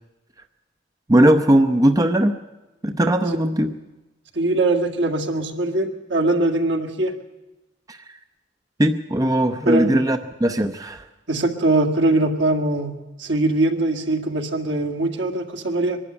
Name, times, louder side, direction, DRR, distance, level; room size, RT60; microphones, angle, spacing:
voice 1, 1.1-2.4 2.8-3.7 7.9-8.0 8.8-11.0, right 1 dB, 20° right, 8 dB, 0.7 m, -18 dB
voice 2, 4.4-7.1 9.7-9.9 11.3-12.9 13.2-16.0, right 2 dB, 70° right, 4 dB, 2.1 m, -21 dB
22.5 x 12.5 x 9.8 m, 1.1 s
head